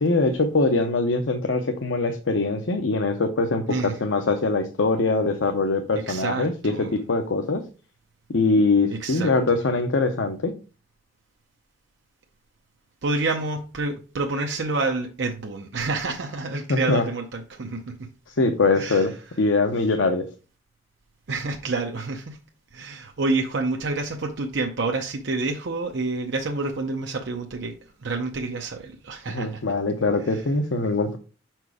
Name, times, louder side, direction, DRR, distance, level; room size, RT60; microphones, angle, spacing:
voice 1, 0.0-7.6 8.3-10.5 16.7-17.0 18.3-19.1 19.4-20.2 29.3-31.2, left 3 dB, 80° left, 0.7 m, -22 dB
voice 2, 6.1-6.9 8.9-9.3 13.0-18.0 18.8-19.1 21.3-22.4 22.7-27.7 28.0-29.6 30.3-30.4, right 3 dB, 65° right, 0.7 m, -28 dB
5.9 x 4.5 x 4.8 m
head